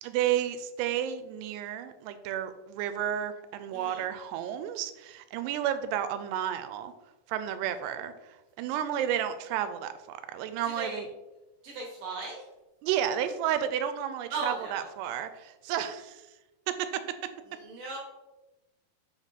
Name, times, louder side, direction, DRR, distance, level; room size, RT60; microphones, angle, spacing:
voice 1, 0.0-6.9 7.3-8.1 8.6-11.1 12.8-16.2 16.7-17.0, right 10 dB, 85° right, 11 dB, 2.6 m, -31 dB
voice 2, 3.7-4.0 10.6-11.0 11.6-12.4 14.3-14.9 17.5-18.0, right 3 dB, 70° right, -2 dB, 2.3 m, -37 dB
6.8 x 3.5 x 4.0 m, 1.0 s
omnidirectional pair, 4.7 m